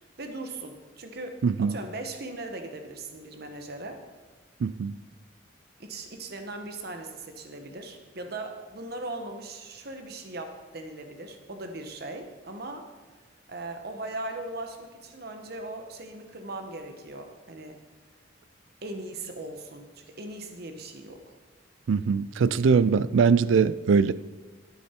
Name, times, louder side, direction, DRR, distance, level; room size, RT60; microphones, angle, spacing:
voice 1, 0.2-4.0 5.8-12.9 13.5-17.8 18.8-21.3, right 2 dB, 55° right, 6 dB, 1.1 m, -39 dB
voice 2, 1.4-1.8 4.6-4.9 21.9-24.1, right 5 dB, 75° right, 17 dB, 0.4 m, -22 dB
13.0 x 7.4 x 4.4 m, 1.3 s
head